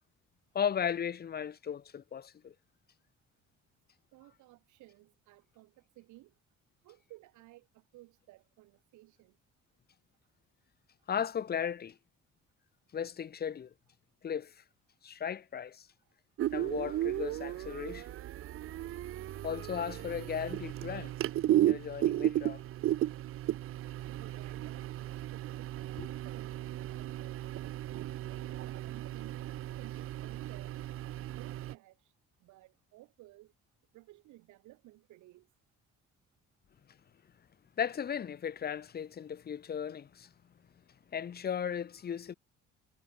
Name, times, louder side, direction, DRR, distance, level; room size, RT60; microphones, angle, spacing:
voice 1, 0.5-2.5 11.1-12.0 12.9-13.7 14.2-14.5 15.0-15.9 16.5-18.1 19.4-21.1 21.5-22.6 26.0-26.1 37.8-40.3 41.1-42.3, left 8 dB, 35° left, 0.6 m, -36 dB
voice 2, 4.1-6.3 6.8-9.4 24.0-27.5 28.2-29.4 29.8-30.8 31.2-32.1 32.4-33.5 33.9-35.5, right 18 dB, 85° right, 4.1 m, -56 dB
sound 1, 16.4-31.7, right 13 dB, 50° right, 0.4 m, -35 dB
cardioid pair, 85°, 29 cm